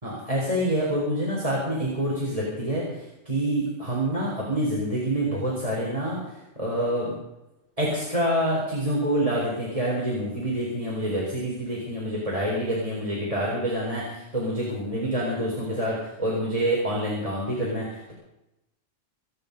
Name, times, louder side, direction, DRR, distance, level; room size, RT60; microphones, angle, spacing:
voice 1, 0.0-7.2 7.8-18.1, right 1 dB, 30° right, -4 dB, 4.3 m, -27 dB
25.5 x 10.0 x 5.3 m, 0.93 s
omnidirectional pair, 1.3 m